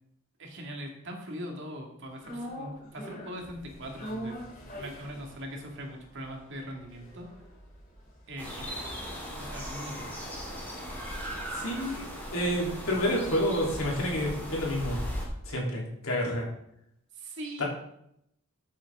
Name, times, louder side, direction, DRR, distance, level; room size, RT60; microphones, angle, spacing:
voice 1, 0.4-4.4 4.7-7.3 8.3-8.9 9.4-10.1 17.1-17.6, equal, 60° right, 1 dB, 2.1 m, -41 dB
sound 1, 2.2-10.5 10.8-10.9, equal, 40° left, 3.0 m, -44 dB
sound 2, 8.4-15.2, equal, 10° left, 2.9 m, -38 dB
voice 2, 11.5-12.0 12.3-15.0 15.4-16.5 17.6-17.7, equal, 75° left, -2 dB, 3.4 m, -29 dB
13.5 x 7.4 x 3.7 m, 0.76 s
head